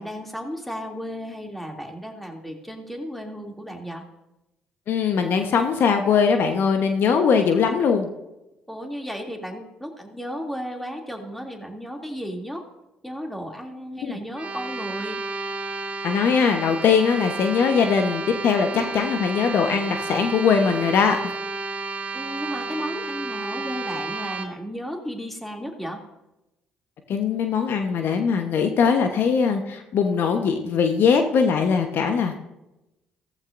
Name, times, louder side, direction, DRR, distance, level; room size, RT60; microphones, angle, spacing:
voice 1, 0.0-4.1 8.7-12.6 13.0-15.2 18.7-19.2 22.1-26.0, equal, 5° left, 1 dB, 2.8 m, -34 dB
voice 2, 4.9-8.1 14.0-14.2 16.0-21.3 27.1-32.5, left 6 dB, 60° left, 6 dB, 1.1 m, -21 dB
sound 1, 14.3-24.5, right 3 dB, 30° right, 3.4 m, -32 dB
15.5 x 14.5 x 2.6 m, 0.95 s
hypercardioid pair, 50°, 4 cm